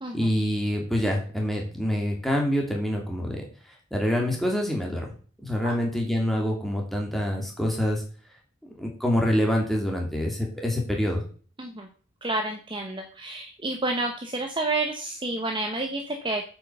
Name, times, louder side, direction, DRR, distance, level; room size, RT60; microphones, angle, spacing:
voice 1, 0.1-3.5 3.9-5.1 5.4-8.0 8.8-11.2, equal, ahead, 0 dB, 2.5 m, -26 dB
voice 2, 12.2-16.4, right 2 dB, 25° right, 4 dB, 1.0 m, -30 dB
8.4 x 5.9 x 6.7 m, 0.42 s
head